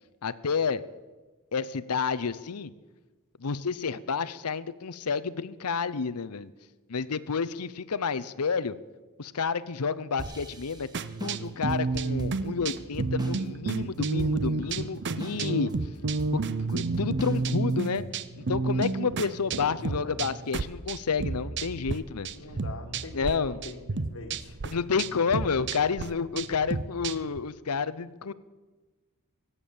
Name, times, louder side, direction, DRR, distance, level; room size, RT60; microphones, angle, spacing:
voice 1, 0.2-0.8 1.5-2.7 3.4-6.5 6.9-8.8 9.2-10.9 11.2-15.7 16.7-18.1 18.4-22.3 23.1-23.6 24.7-28.3, left 5 dB, 90° left, 16 dB, 0.7 m, -30 dB
sound 1, 10.2-13.4 13.7-13.8 14.2-14.7 15.2-15.7 16.2-18.0, right 1 dB, 20° right, 1.5 m, -40 dB
sound 2, 10.9-22.0 22.2-23.3 23.6-27.4, right 3 dB, 55° right, 0.7 m, -31 dB
voice 2, 19.6-20.4 22.3-25.0, left 2 dB, 65° left, 6 dB, 1.8 m, -43 dB
24.0 x 8.4 x 7.1 m, 1.3 s
head